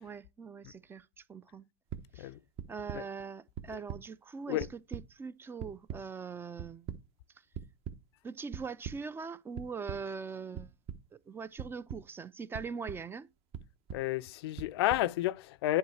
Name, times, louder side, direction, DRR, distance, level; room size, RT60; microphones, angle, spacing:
voice 1, 0.0-1.6 2.1-2.3 2.7-7.0 8.2-10.7 11.1-13.3, right 5 dB, 15° right, 0.4 m, -42 dB
sound 1, 1.9-2.0 2.6-3.0 3.6-4.0 4.4-5.0 5.6-6.0 6.6-7.0 7.5-8.0 8.5-8.9 9.6-10.0 10.5-11.0 11.6-12.0 12.5-13.0 13.5-14.0 14.6-15.0, right 8 dB, 45° right, 1.1 m, -40 dB
voice 2, 13.9-15.8, left 16 dB, 65° left, 0.4 m, -31 dB
9.7 x 4.8 x 3.2 m
hypercardioid pair, 110°, 14 cm